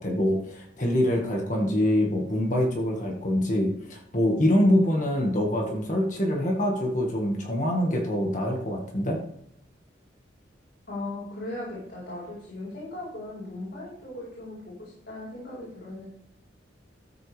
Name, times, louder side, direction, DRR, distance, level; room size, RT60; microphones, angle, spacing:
voice 1, 0.0-9.2, left 1 dB, 40° left, 1 dB, 1.7 m, -25 dB
voice 2, 10.9-16.1, left 2 dB, 60° left, -7 dB, 4.9 m, -38 dB
13.5 x 7.9 x 3.4 m, 0.74 s
head